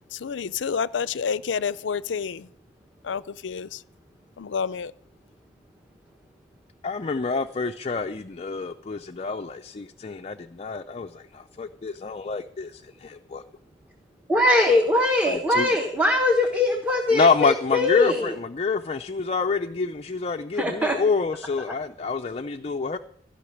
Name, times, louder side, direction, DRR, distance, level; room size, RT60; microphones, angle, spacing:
voice 1, 0.2-2.5 3.0-3.8 4.4-4.9, left 6 dB, 90° left, 0.5 m, -29 dB
voice 2, 6.8-13.4 15.3-15.8 17.1-23.0, left 4 dB, 35° left, 0.4 m, -27 dB
voice 3, 14.3-18.3 20.6-21.0, left 1 dB, 10° right, 1.3 m, -21 dB
15.5 x 5.8 x 9.8 m
head